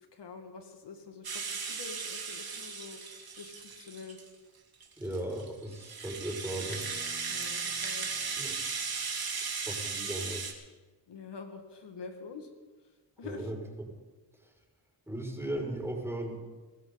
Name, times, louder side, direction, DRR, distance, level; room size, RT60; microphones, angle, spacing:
voice 1, 0.1-3.0 3.3-4.2 7.3-8.1 11.1-12.5 13.2-13.5, left 5 dB, 65° left, 4 dB, 2.0 m, -46 dB
Rattle (instrument), 1.2-4.3 4.8-10.5, right 5 dB, 55° right, 3.0 m, -36 dB
voice 2, 5.0-6.8 8.4-8.6 9.7-10.5 13.2-13.6 14.4-14.5 15.1-16.4, right 1 dB, 5° right, 0 dB, 5.9 m, -37 dB
sound 1, 6.4-9.5, left 3 dB, 25° left, 3.1 m, -55 dB
23.0 x 14.0 x 4.0 m, 1.3 s
cardioid pair, 60°, 45 cm